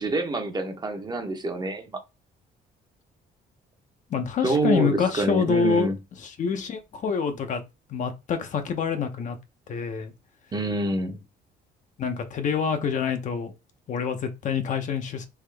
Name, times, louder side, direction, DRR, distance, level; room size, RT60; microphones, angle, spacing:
voice 1, 0.0-2.0 4.4-6.0 10.5-11.2, right 2 dB, 25° right, 0.8 m, -27 dB
voice 2, 4.1-5.9 6.2-7.6 7.9-9.4 9.7-10.1 12.0-13.5 13.9-15.2, left 6 dB, 50° left, 0.7 m, -26 dB
3.6 x 2.9 x 3.3 m
cardioid pair, 110°, 17 cm